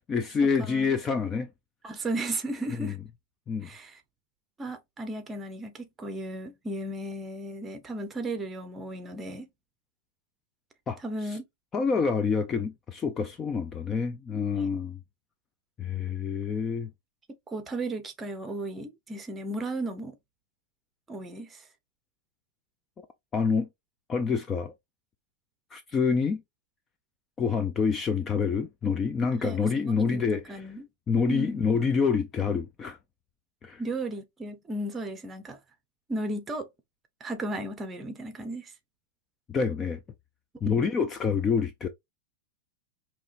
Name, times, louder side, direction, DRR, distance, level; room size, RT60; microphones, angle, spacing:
voice 1, 0.0-1.5 2.8-3.0 3.5-3.7 10.9-11.0 11.2-11.4 11.7-15.0 15.8-16.9 23.3-23.7 24.1-24.7 25.7-26.4 27.4-30.7 31.1-33.0 33.6-33.8 39.5-40.0 40.6-41.9, left 5 dB, 20° left, 0.4 m, -27 dB
voice 2, 0.6-0.9 1.8-3.0 3.6-4.0 4.6-9.5 11.0-11.4 17.5-20.1 21.1-21.6 29.4-29.6 30.0-30.9 31.3-31.6 33.8-35.6 36.1-36.7 37.2-38.7 40.7-40.8, right 1 dB, 15° right, 0.9 m, -35 dB
5.4 x 2.9 x 2.5 m
supercardioid pair, 155°, 0 cm